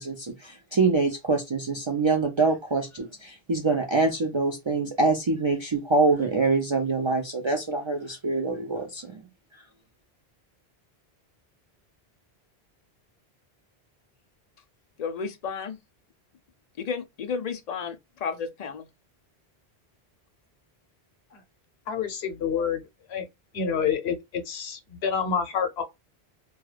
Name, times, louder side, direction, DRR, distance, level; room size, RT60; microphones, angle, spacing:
voice 1, 0.0-9.2, right 3 dB, 50° right, 0.3 m, -25 dB
voice 2, 15.0-15.8 16.8-18.9, left 6 dB, 55° left, 0.5 m, -32 dB
voice 3, 21.9-22.8 23.1-23.3 23.5-25.8, left 7 dB, 80° left, 1.0 m, -28 dB
2.3 x 2.3 x 3.2 m
omnidirectional pair, 1.1 m